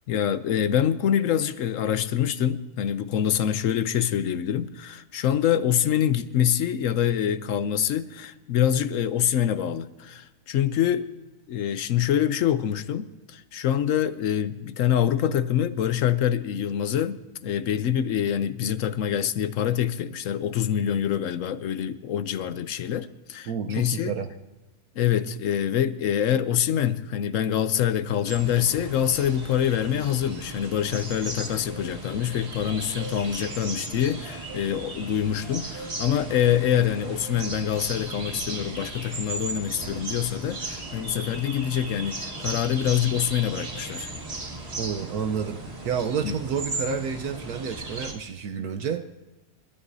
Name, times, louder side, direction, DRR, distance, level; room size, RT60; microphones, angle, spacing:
voice 1, 0.1-11.1 11.5-24.1 25.0-44.2 46.2-46.4, left 10 dB, 65° left, 0.9 m, -25 dB
voice 2, 23.5-24.3 44.8-49.0, right 7 dB, 75° right, 1.3 m, -30 dB
sound 1, 28.2-48.1, right 2 dB, 40° right, 2.1 m, -36 dB
29.5 x 13.0 x 2.7 m
omnidirectional pair, 1.6 m